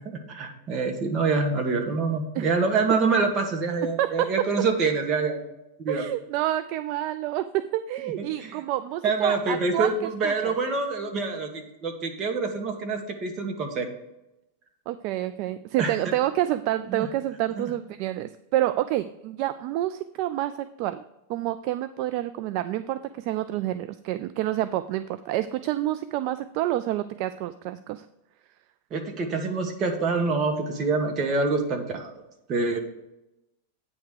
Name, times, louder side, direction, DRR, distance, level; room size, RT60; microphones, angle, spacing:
voice 1, 0.0-5.5 5.8-6.1 8.2-8.6 9.0-13.9 15.8-16.1 16.9-17.1 17.6-17.7 28.9-32.1 32.5-32.8, right 4 dB, 30° right, 3 dB, 1.4 m, -26 dB
voice 2, 4.0-4.5 5.9-7.5 7.7-9.9 10.2-10.5 14.9-20.5 20.8-21.0 21.3-28.0, right 14 dB, 50° right, 12 dB, 0.3 m, -28 dB
9.1 x 3.5 x 6.5 m, 0.92 s
supercardioid pair, 130°, 0 cm